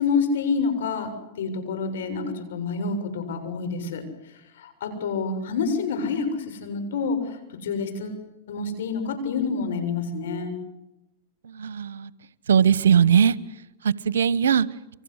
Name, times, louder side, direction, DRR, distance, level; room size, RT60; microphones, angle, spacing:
voice 1, 0.0-4.1 4.6-8.2 8.5-10.5, left 4 dB, 75° left, 9 dB, 7.2 m, -28 dB
voice 2, 11.6-12.1 12.5-13.3 13.8-14.7, right 8 dB, 85° right, 20 dB, 1.1 m, -19 dB
28.5 x 25.0 x 8.2 m, 0.92 s
hypercardioid pair, 115°, 0 cm